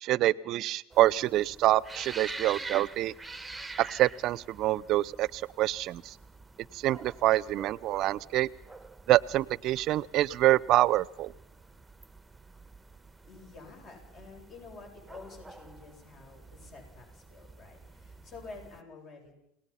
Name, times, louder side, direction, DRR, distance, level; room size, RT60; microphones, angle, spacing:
voice 1, 0.0-3.1 3.8-6.1 6.7-8.5 9.1-11.3, right 15 dB, 50° right, 22 dB, 0.7 m, -26 dB
sound 1, 0.9-18.8, right 3 dB, 10° right, 1.2 m, -47 dB
voice 2, 13.2-19.4, left 4 dB, 40° left, 3 dB, 7.9 m, -49 dB
29.0 x 18.5 x 5.8 m, 0.84 s
hypercardioid pair, 95°, 0 cm